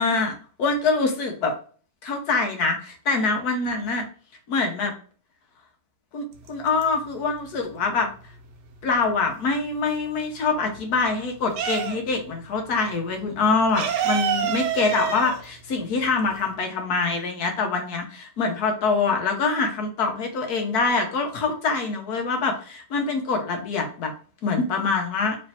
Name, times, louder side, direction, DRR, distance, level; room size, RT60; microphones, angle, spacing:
voice 1, 0.0-1.5 2.0-4.0 4.5-4.9 6.1-8.1 8.8-24.1 24.4-25.4, left 4 dB, 65° left, 4 dB, 1.3 m, -24 dB
sound 1, 6.4-7.3 7.6-9.5 9.9-12.3 12.6-12.7 13.0-16.6, right 8 dB, 85° right, 1.3 m, -28 dB
3.2 x 3.2 x 4.2 m, 0.41 s
omnidirectional pair, 1.8 m